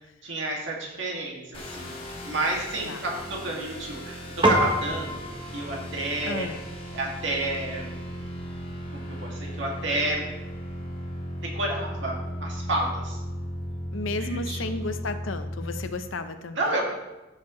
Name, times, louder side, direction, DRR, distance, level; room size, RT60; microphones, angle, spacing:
voice 1, 0.2-6.5 6.9-8.0 8.9-10.2 11.4-13.2 14.2-14.7 16.6-16.8, right 2 dB, 65° right, -2 dB, 2.2 m, -30 dB
sound 1, 1.5-15.9, equal, 30° left, 1.8 m, -36 dB
Piano, 4.4-14.0, right 1 dB, 25° right, 1.1 m, -33 dB
voice 2, 6.2-6.6 13.9-16.7, left 3 dB, 85° left, 9 dB, 0.8 m, -33 dB
14.0 x 6.6 x 3.2 m, 1.0 s
head